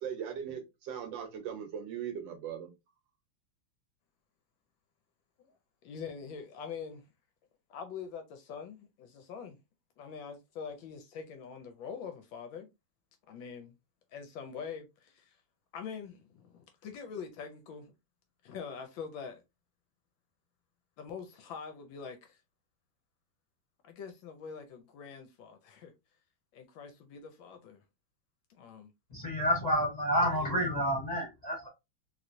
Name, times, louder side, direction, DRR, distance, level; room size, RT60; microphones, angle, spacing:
voice 1, 0.0-2.7, right 8 dB, 70° right, 1.4 m, -39 dB
voice 2, 5.8-7.0 7.7-9.6 10.0-12.7 13.3-13.7 14.1-15.4 15.7-17.9 18.4-19.4 21.0-22.4 23.8-25.9 26.5-27.8 28.5-28.9 30.4-30.7, left 6 dB, 75° left, 1.2 m, -44 dB
voice 3, 29.1-31.7, equal, 25° left, 1.0 m, -29 dB
3.0 x 3.0 x 2.5 m
omnidirectional pair, 2.4 m